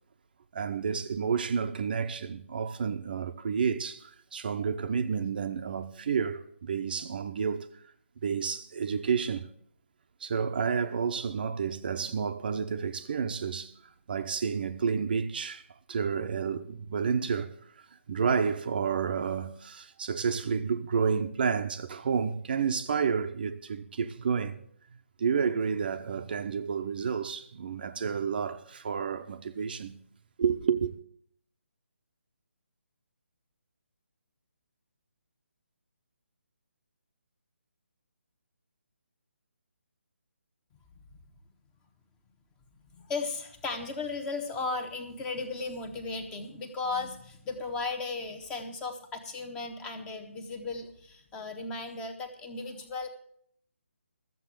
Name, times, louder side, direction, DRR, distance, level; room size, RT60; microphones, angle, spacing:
voice 1, 0.5-7.7 8.2-9.5 10.2-13.7 14.1-17.5 18.1-24.6 25.2-30.0 30.4-30.9, right 6 dB, 40° right, 0.8 m, -30 dB
voice 2, 42.9-53.1, left 3 dB, 10° left, 1.2 m, -36 dB
13.5 x 7.6 x 7.5 m
figure-of-eight pair, 145°, 7 cm